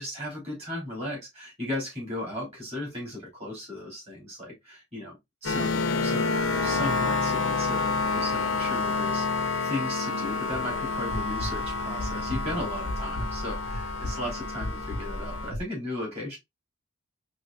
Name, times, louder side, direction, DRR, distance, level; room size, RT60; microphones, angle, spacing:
voice 1, 0.0-5.2 5.4-6.3 6.6-16.4, left 1 dB, 30° right, 3.0 m, -36 dB
sound 1, 5.4-15.5, left 3 dB, 70° left, 0.6 m, -29 dB
sound 2, 8.5-15.6, left 1 dB, 70° right, 1.9 m, -37 dB
5.1 x 3.0 x 2.4 m
head